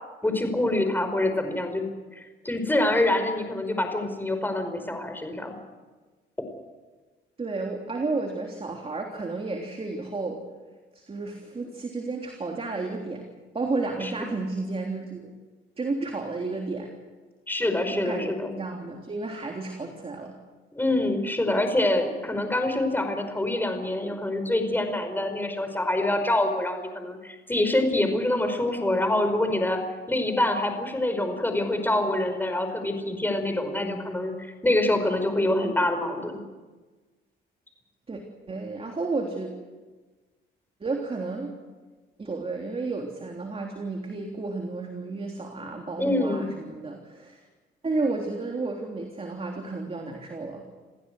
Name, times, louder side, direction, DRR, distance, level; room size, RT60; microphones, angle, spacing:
voice 1, 0.2-1.9 2.1-5.6 14.0-14.3 17.5-18.5 20.7-29.8 30.1-36.4 46.0-46.5, left 1 dB, 10° left, 6 dB, 5.3 m, -26 dB
voice 2, 7.4-10.4 10.9-13.3 13.5-15.3 15.8-16.9 17.9-18.3 18.6-20.3 38.1-38.2 38.5-39.5 40.8-41.6 42.2-47.4 47.8-50.6, right 3 dB, 30° right, 2 dB, 3.4 m, -32 dB
29.0 x 15.5 x 8.0 m, 1.3 s
cardioid pair, 90°, 20 cm